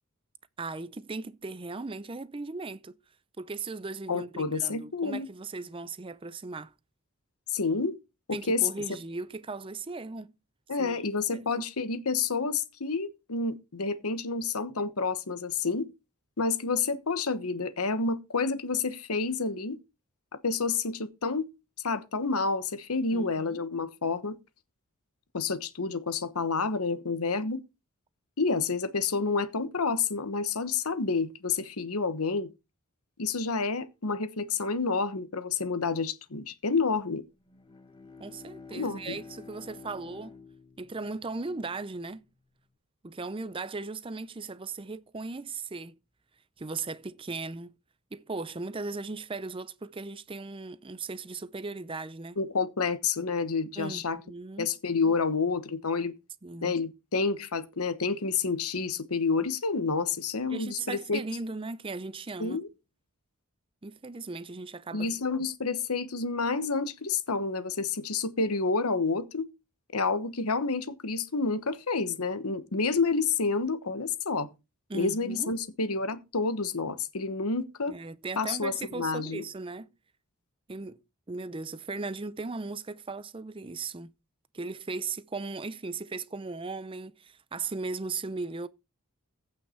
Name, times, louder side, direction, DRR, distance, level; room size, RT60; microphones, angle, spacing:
voice 1, 0.6-3.0 3.4-6.7 8.3-10.3 10.8-11.0 11.3-11.5 23.1-23.7 38.2-40.4 40.8-42.3 43.0-46.0 46.6-47.7 48.1-52.4 53.8-54.7 56.4-56.8 60.5-62.6 63.8-65.1 74.9-75.6 77.9-79.9 80.7-81.0 81.3-84.1 84.5-88.7, right 3 dB, 25° right, 0.5 m, -37 dB
voice 2, 4.1-5.3 7.5-8.0 8.3-8.7 10.7-15.9 16.4-19.8 20.4-21.5 21.8-24.4 25.3-27.6 28.4-32.5 33.2-37.2 38.7-39.1 52.4-54.2 54.6-56.1 56.6-61.2 62.4-62.7 64.9-69.5 69.9-74.5 74.9-78.0 78.4-79.4, left 4 dB, 85° left, 1.1 m, -29 dB
Bowed string instrument, 37.4-42.0, left 4 dB, 20° left, 1.1 m, -50 dB
15.5 x 5.6 x 4.4 m
head